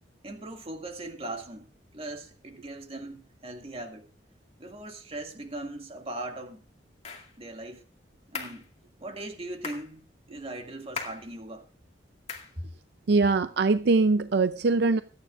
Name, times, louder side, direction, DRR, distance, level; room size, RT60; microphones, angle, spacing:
voice 1, 0.2-1.7 1.9-4.1 4.6-6.6 7.4-7.8 8.3-8.6 9.0-11.6 12.6-12.7, right 2 dB, 35° right, 2.0 m, -39 dB
sound 1, 7.0-7.3 8.4-8.6 9.6-9.9 11.0-11.3 12.3-12.5, left 5 dB, 40° left, 2.2 m, -37 dB
voice 2, 13.1-15.0, right 3 dB, 65° right, 0.5 m, -22 dB
25.0 x 9.6 x 2.4 m
head